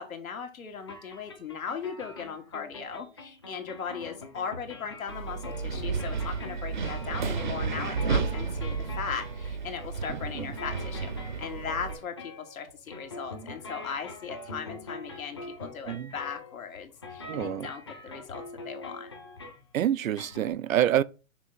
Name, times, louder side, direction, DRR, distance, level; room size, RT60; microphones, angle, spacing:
voice 1, 0.0-19.1, left 6 dB, 90° left, 1.9 m, -38 dB
sound 1, 0.8-19.7 20.1-20.5, left 2 dB, 20° left, 0.6 m, -44 dB
Wind, 5.1-11.9, right 5 dB, 35° right, 0.6 m, -32 dB
voice 2, 17.3-17.7 19.7-21.0, right 11 dB, 80° right, 0.6 m, -27 dB
6.0 x 3.4 x 5.5 m
hypercardioid pair, 175°, 40 cm